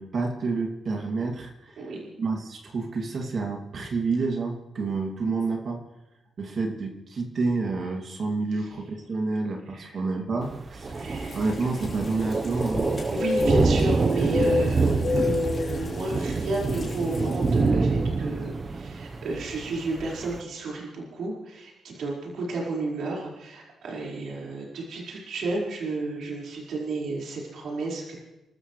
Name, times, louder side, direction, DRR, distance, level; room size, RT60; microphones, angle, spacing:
voice 1, 0.0-1.8 2.2-5.8 6.4-11.0 11.3-12.9, right 3 dB, 55° right, 2 dB, 2.6 m, -29 dB
voice 2, 1.8-2.1 8.6-8.7 9.7-9.9 10.9-11.5 13.1-28.2, right 2 dB, 75° right, -3 dB, 5.0 m, -32 dB
Thunder, 10.4-20.4, right 3 dB, 35° right, 1.0 m, -26 dB
sound 1, 11.0-17.6, left 4 dB, 45° left, 3.7 m, -31 dB
30.0 x 13.0 x 3.3 m, 1.0 s
cardioid pair, 95°, 0 cm